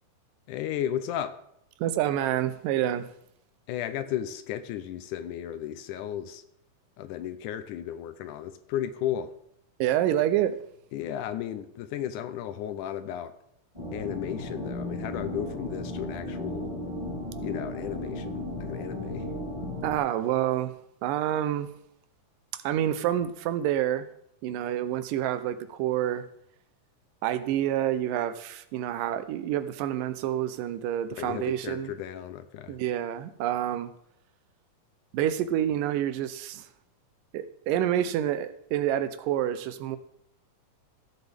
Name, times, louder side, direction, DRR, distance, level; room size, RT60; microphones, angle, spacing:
voice 1, 0.5-1.4 3.7-6.4 7.0-9.4 10.9-13.4 13.9-16.7 17.4-19.3 31.2-32.8, left 10 dB, 80° left, 11 dB, 2.0 m, -34 dB
voice 2, 1.8-3.1 9.8-10.6 19.8-20.7 21.0-21.7 22.6-24.1 24.4-26.2 27.2-31.9 32.7-33.9 35.1-36.7 37.3-40.0, right 11 dB, 85° right, 12 dB, 2.3 m, -28 dB
sound 1, 13.7-20.0, left 1 dB, 10° right, 3.1 m, -35 dB
15.5 x 8.0 x 3.5 m, 0.72 s
omnidirectional pair, 3.8 m